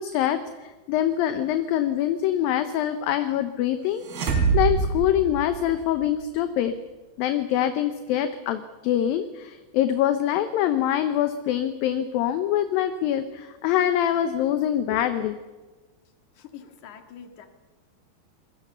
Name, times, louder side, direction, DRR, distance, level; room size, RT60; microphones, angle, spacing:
voice 1, 0.0-6.7 7.2-15.4, left 11 dB, 75° left, 9 dB, 2.5 m, -24 dB
sound 1, 4.0-6.0, right 5 dB, 70° right, 4.4 m, -25 dB
voice 2, 16.4-17.5, left 8 dB, 55° left, 6 dB, 3.0 m, -45 dB
26.5 x 22.0 x 6.9 m, 1.3 s
omnidirectional pair, 4.6 m